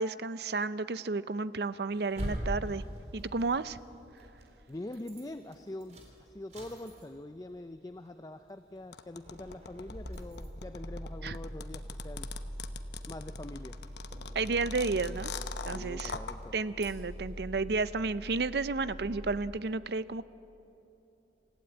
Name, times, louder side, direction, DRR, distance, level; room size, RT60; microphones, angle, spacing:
voice 1, 0.0-2.8 3.1-3.8 11.2-11.4 14.3-15.3 15.7-16.2 16.5-20.2, right 3 dB, 60° right, 15 dB, 0.6 m, -32 dB
sound 1, 1.9-4.5 4.9-5.3 5.5-7.4 7.7-7.8 8.1-8.2 8.8-9.0 9.2-19.4, equal, 40° right, 3.9 m, -42 dB
voice 2, 4.7-12.3 13.1-13.8 15.7-16.5, left 1 dB, 20° left, 9 dB, 0.5 m, -44 dB
sound 2, 8.9-16.3, left 6 dB, 65° left, 1.0 m, -42 dB
27.5 x 15.5 x 8.9 m, 3.0 s
head